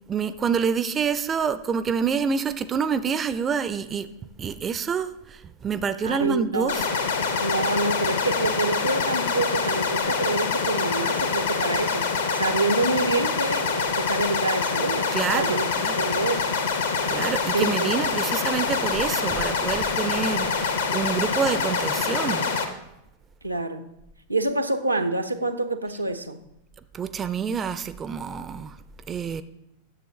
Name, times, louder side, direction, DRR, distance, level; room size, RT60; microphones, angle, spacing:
voice 1, 0.1-4.1 4.4-6.9 15.1-16.1 17.1-22.5 26.9-28.8 29.1-29.4, right 6 dB, 25° right, 13 dB, 0.3 m, -27 dB
voice 2, 6.0-6.8 7.4-15.1 15.3-15.7 16.0-16.5 17.5-17.9 18.6-18.7 23.4-23.8 24.3-26.4, right 2 dB, 85° right, 8 dB, 0.5 m, -27 dB
sound 1, 6.7-22.7, left 5 dB, 65° left, 0.8 m, -25 dB
9.9 x 7.1 x 3.1 m, 0.84 s
figure-of-eight pair, 90°, 0 cm